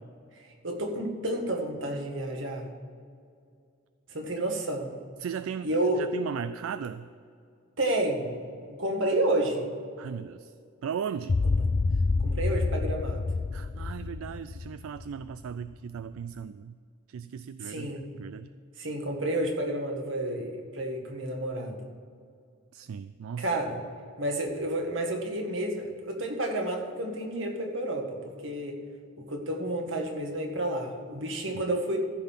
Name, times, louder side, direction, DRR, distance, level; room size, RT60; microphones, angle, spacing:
voice 1, 0.6-2.7 4.1-4.9 5.6-6.0 7.8-8.3 8.6-9.7 11.4-11.6 12.2-13.2 17.6-18.1 18.8-21.8 23.4-23.8 24.2-28.8 29.3-32.0, right 1 dB, 65° right, 2 dB, 1.8 m, -30 dB
voice 2, 5.2-5.7 6.0-7.1 10.0-10.5 10.8-11.4 13.5-16.7 17.1-18.5 22.7-23.5, right 7 dB, 85° right, 13 dB, 0.3 m, -37 dB
sound 1, 11.3-15.6, left 3 dB, 30° left, 0.3 m, -28 dB
14.5 x 5.7 x 7.3 m, 2.3 s
head